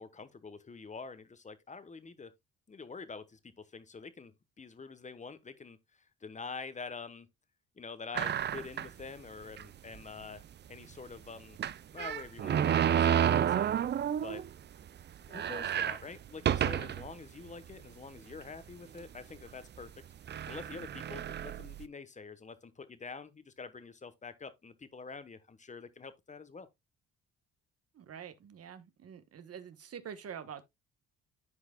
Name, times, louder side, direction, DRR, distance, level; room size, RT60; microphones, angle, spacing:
voice 1, 0.0-2.3 2.7-7.3 7.8-10.4 10.7-11.6 11.9-13.7 14.2-14.4 15.3-19.9 20.5-26.7, left 4 dB, 25° left, 1.0 m, -46 dB
sound 1, 8.1-9.0 9.6-9.7 9.9-10.0 11.6-14.5 14.9-15.0 15.2-17.1 17.7-17.8 18.7-19.0 19.8-19.9 20.3-21.8, right 9 dB, 35° right, 0.4 m, -30 dB
voice 2, 27.9-30.6, right 8 dB, 50° right, 1.2 m, -46 dB
13.5 x 4.7 x 2.3 m
cardioid pair, 90°, 30 cm